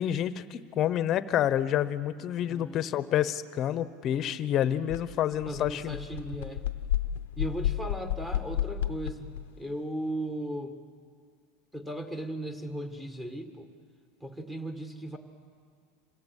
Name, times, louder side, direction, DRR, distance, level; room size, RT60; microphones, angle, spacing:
voice 1, 0.0-6.0, left 11 dB, 40° left, 14 dB, 0.9 m, -28 dB
voice 2, 2.4-2.8 5.5-6.7 7.4-9.3 9.6-10.8 11.7-13.7 14.2-15.2, right 1 dB, 10° right, 4 dB, 1.8 m, -36 dB
sound 1, 4.9-5.0 5.3-9.5, left 11 dB, 85° left, 0.7 m, -31 dB
26.5 x 17.5 x 8.4 m, 2.2 s
supercardioid pair, 135°, 0 cm